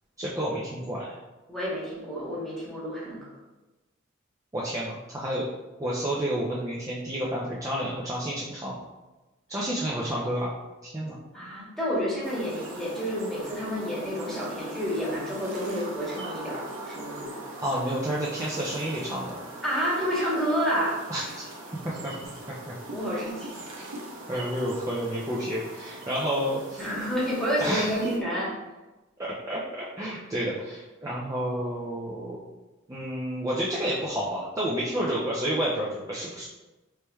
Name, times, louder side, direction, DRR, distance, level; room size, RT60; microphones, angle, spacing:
voice 1, 0.2-1.2 4.5-5.5 5.8-8.8 9.5-10.5 10.8-11.2 17.6-19.4 21.1-21.5 21.8-22.1 22.7-22.8 23.8-23.9 24.3-26.8 27.6-28.1 29.2-32.4 32.9-36.4, right 1 dB, 15° right, -6 dB, 0.4 m, -30 dB
voice 2, 1.5-3.2 11.3-17.3 19.6-21.0 22.9-23.6 26.8-28.5, equal, ahead, -7 dB, 1.0 m, -29 dB
sound 1, 12.2-28.2, right 2 dB, 85° right, 0.8 m, -41 dB
4.5 x 3.1 x 2.2 m, 1.1 s
head